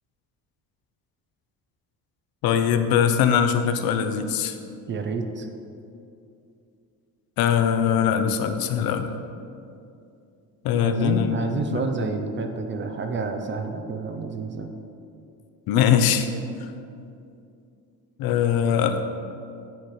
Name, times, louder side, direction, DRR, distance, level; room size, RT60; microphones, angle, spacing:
voice 1, 2.4-4.6 7.4-9.1 10.6-11.4 11.7-11.8 15.7-16.3 18.2-19.0, left 8 dB, 70° left, 8 dB, 0.5 m, -21 dB
voice 2, 4.9-5.5 10.8-14.7, right 4 dB, 30° right, 5 dB, 0.4 m, -29 dB
8.9 x 3.1 x 4.1 m, 2.6 s
cardioid pair, 135°, 37 cm